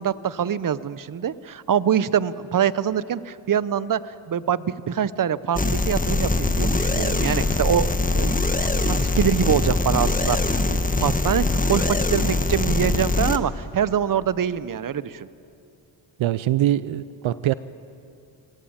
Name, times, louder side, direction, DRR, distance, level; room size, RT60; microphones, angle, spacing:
voice 1, 0.0-4.0 4.3-15.3, right 8 dB, 40° right, 17 dB, 0.8 m, -24 dB
sound 1, 5.5-13.4, left 2 dB, 15° left, 1.3 m, -22 dB
voice 2, 16.2-17.5, right 13 dB, 75° right, 16 dB, 0.6 m, -23 dB
22.5 x 17.5 x 8.8 m, 2.6 s
cardioid pair, 55°, 48 cm